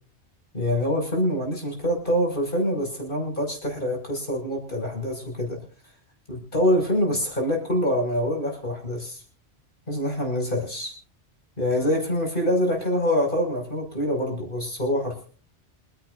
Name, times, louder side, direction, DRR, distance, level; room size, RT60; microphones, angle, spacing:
voice 1, 0.5-5.6 6.3-9.2 9.9-10.9 11.6-15.3, equal, 45° left, 1 dB, 6.3 m, -25 dB
27.5 x 11.0 x 2.6 m, 0.41 s
omnidirectional pair, 1.2 m